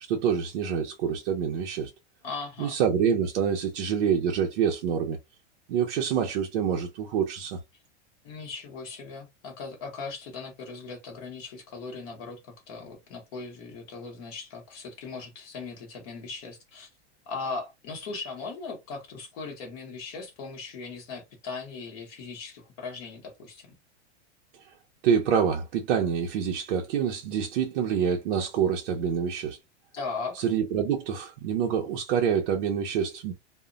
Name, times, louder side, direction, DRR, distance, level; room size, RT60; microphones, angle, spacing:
voice 1, 0.1-1.9 2.6-5.2 5.7-7.6 25.0-29.6 30.4-33.3, right 7 dB, 55° right, 0.5 m, -26 dB
voice 2, 2.2-2.8 8.2-16.9 17.3-23.7 29.9-30.4, left 4 dB, 35° left, 0.8 m, -38 dB
2.1 x 2.0 x 3.7 m
supercardioid pair, 175°, 34 cm